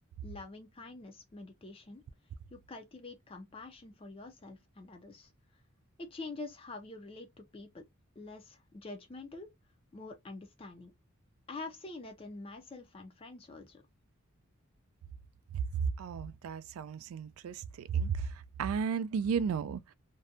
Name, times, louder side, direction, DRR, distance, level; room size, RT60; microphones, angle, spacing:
voice 1, 0.2-2.0 2.5-5.3 6.0-7.8 8.2-9.5 9.9-10.9 11.5-13.8, left 3 dB, 25° left, 0.4 m, -46 dB
voice 2, 15.5-19.9, right 6 dB, 80° right, 0.3 m, -34 dB
2.6 x 2.1 x 2.5 m
head